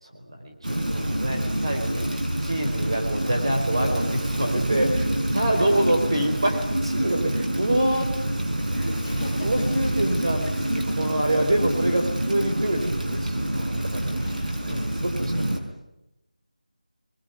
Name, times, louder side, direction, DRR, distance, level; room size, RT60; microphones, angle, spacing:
voice 1, 0.0-2.1 2.4-8.1 8.7-9.0 9.4-14.1 14.7-15.4, right 1 dB, 40° right, 3 dB, 4.3 m, -26 dB
Rain, 0.6-15.6, right 1 dB, 90° right, 5.1 m, -27 dB
voice 2, 5.5-5.9 9.0-9.7 14.2-14.7, left 3 dB, 10° left, -6 dB, 3.4 m, -38 dB
22.5 x 21.5 x 9.7 m, 0.91 s
figure-of-eight pair, 180°, 4 cm